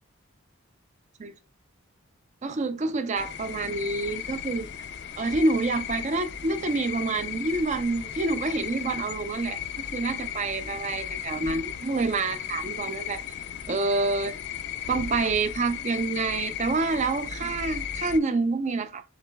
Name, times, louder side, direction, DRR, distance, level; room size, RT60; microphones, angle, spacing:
voice 1, 2.4-4.7 5.2-13.2 13.7-14.4 14.9-19.0, right 3 dB, 35° right, 0.4 m, -27 dB
sound 1, 3.2-18.2, left 9 dB, 55° left, 0.4 m, -36 dB
7.3 x 3.0 x 2.2 m
head